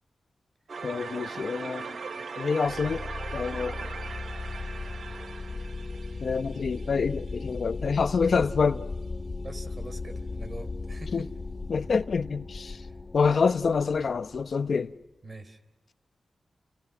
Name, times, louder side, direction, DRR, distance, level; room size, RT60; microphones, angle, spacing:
sound 1, 0.7-13.2, left 1 dB, 10° left, 3.1 m, -51 dB
sound 2, 0.7-7.6, right 5 dB, 75° right, 0.8 m, -40 dB
voice 1, 0.8-1.9 2.4-3.0 3.3-3.7 6.2-8.8 11.1-11.3 11.7-12.8 13.1-14.9, left 5 dB, 70° left, 0.8 m, -26 dB
sound 3, 2.6-14.9, left 3 dB, 50° left, 2.4 m, -37 dB
voice 2, 9.4-11.3 12.7-12.9 15.2-15.6, right 2 dB, 45° right, 4.0 m, -44 dB
30.0 x 29.5 x 6.2 m
cardioid pair, 65°, 0 cm